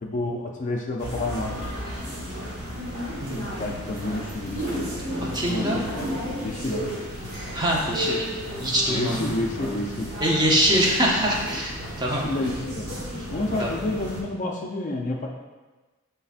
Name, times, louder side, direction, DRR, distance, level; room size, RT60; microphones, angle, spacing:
voice 1, 0.0-1.7 3.5-4.9 5.5-6.1 6.4-7.0 8.9-10.1 12.0-12.9 13.3-15.3, left 2 dB, 35° left, 1 dB, 0.4 m, -30 dB
sound 1, 1.0-14.2, equal, 45° right, 1.1 m, -33 dB
voice 2, 5.2-5.8 7.5-8.2 8.6-9.3 10.2-12.2 13.6-13.7, equal, 20° right, -3 dB, 0.6 m, -23 dB
5.5 x 3.3 x 2.4 m, 1.2 s
head